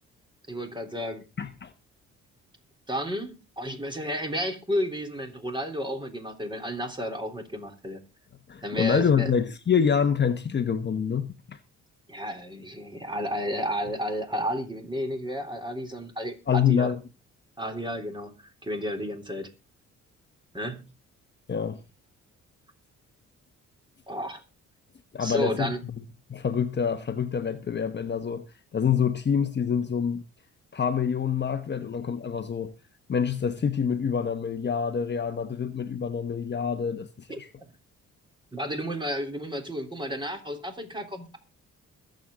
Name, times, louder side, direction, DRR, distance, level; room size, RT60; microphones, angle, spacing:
voice 1, 0.5-1.2 2.9-8.0 8.6-9.3 12.1-16.9 17.6-18.3 18.6-19.5 20.5-20.9 24.1-24.4 25.2-25.8 31.7-31.8 37.3-37.4 38.5-41.4, equal, 15° right, 3.6 m, -32 dB
voice 2, 1.4-1.7 8.5-11.6 16.5-17.0 21.5-21.8 25.1-25.7 26.3-28.4 28.7-30.2 30.7-32.7 33.1-37.5, left 7 dB, 35° left, 1.1 m, -26 dB
22.0 x 7.8 x 3.8 m
cardioid pair, 90°, 30 cm